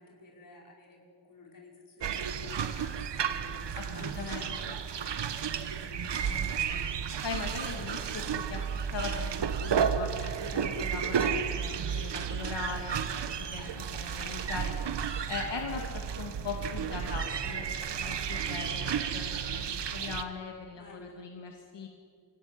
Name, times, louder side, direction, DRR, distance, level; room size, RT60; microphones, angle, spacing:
voice 1, 0.0-4.2 4.5-4.6 5.9-6.1 11.9-12.2 20.7-21.2, left 2 dB, 50° left, -1 dB, 5.5 m, -52 dB
sound 1, 2.0-20.2, right 7 dB, 85° right, 1.3 m, -32 dB
voice 2, 3.7-4.8 5.6-5.7 6.0-6.5 6.7-6.9 7.2-13.0 13.4-14.7 15.3-21.9, left 5 dB, 85° left, 1 dB, 2.4 m, -40 dB
27.0 x 16.5 x 9.9 m, 2.1 s
wide cardioid pair, 175°, 41 cm